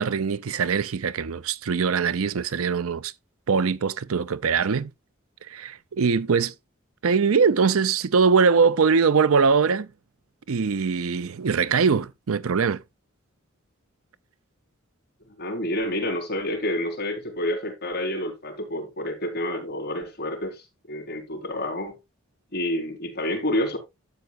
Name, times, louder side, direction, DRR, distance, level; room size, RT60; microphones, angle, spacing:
voice 1, 0.0-3.1 3.5-4.9 5.5-6.5 7.0-9.9 10.5-12.8, right 5 dB, 75° right, 0.6 m, -22 dB
voice 2, 15.4-22.0 22.5-23.8, left 1 dB, 50° left, 4.0 m, -29 dB
12.5 x 7.9 x 2.5 m
head